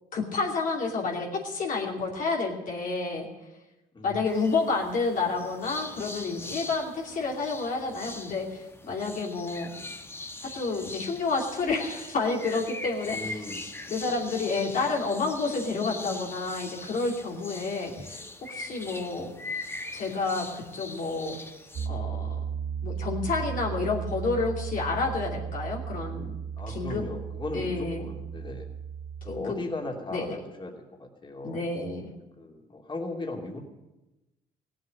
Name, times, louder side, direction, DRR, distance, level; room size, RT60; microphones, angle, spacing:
voice 1, 0.1-3.3 4.0-9.7 10.4-13.5 13.9-18.2 18.5-19.3 19.9-21.3 21.9-22.4 22.8-26.3 26.7-27.0 27.5-28.1 29.3-29.6 30.1-30.4 31.4-32.1, left 4 dB, 60° left, -1 dB, 2.8 m, -30 dB
voice 2, 3.9-4.3 13.1-13.6 14.4-14.5 18.9-19.5 26.6-28.7 29.2-31.7 32.4-33.6, left 2 dB, 30° left, 0 dB, 3.0 m, -37 dB
sound 1, 4.2-21.9, left 2 dB, 15° left, 1.1 m, -41 dB
Piano, 21.7-29.4, right 7 dB, 55° right, 0.8 m, -35 dB
16.5 x 7.8 x 9.6 m, 1.0 s
supercardioid pair, 80°, 16 cm